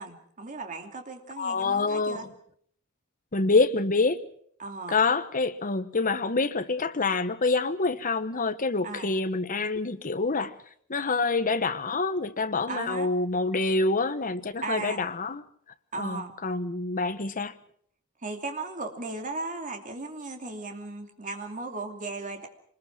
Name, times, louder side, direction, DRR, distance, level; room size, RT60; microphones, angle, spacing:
voice 1, 0.0-2.3 4.6-5.0 8.8-9.1 12.7-13.1 14.6-15.1 15.9-16.3 18.2-22.5, right 3 dB, 35° right, 2.7 m, -36 dB
voice 2, 1.4-2.3 3.3-4.2 4.9-10.6 10.9-15.4 16.0-17.5, left 3 dB, 40° left, 1.2 m, -26 dB
24.5 x 20.5 x 6.1 m
head